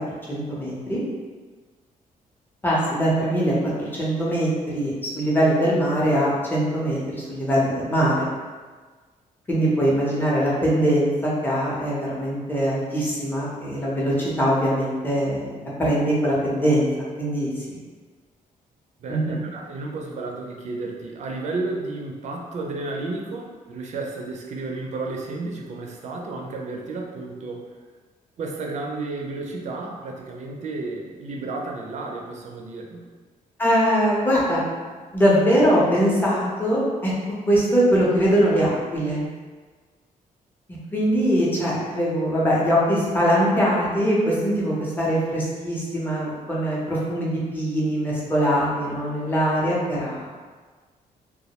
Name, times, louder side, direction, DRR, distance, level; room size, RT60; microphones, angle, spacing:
voice 1, 0.3-1.0 2.6-8.3 9.5-17.8 19.1-19.4 33.6-34.6 35.1-37.1 37.5-39.3 40.9-50.3, equal, 15° left, -6 dB, 0.6 m, -22 dB
voice 2, 19.0-27.7 28.4-33.1, right 3 dB, 50° right, 0 dB, 0.4 m, -32 dB
2.2 x 2.0 x 2.8 m, 1.4 s
cardioid pair, 140°, 15 cm